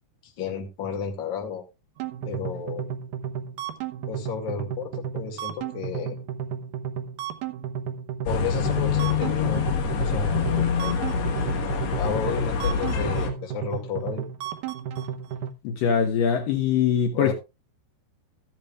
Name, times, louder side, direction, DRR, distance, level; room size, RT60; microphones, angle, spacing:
voice 1, 0.2-1.6 2.2-2.8 4.1-6.2 8.2-9.7 9.9-11.2 11.9-14.2 17.1-17.3, left 7 dB, 35° left, 2.2 m, -32 dB
sound 1, 2.0-15.5, right 8 dB, 70° right, 2.0 m, -33 dB
sound 2, 8.3-13.3, left 6 dB, 85° left, 3.6 m, -25 dB
voice 2, 15.6-17.3, left 7 dB, 70° left, 2.5 m, -22 dB
14.0 x 10.5 x 2.4 m
omnidirectional pair, 4.6 m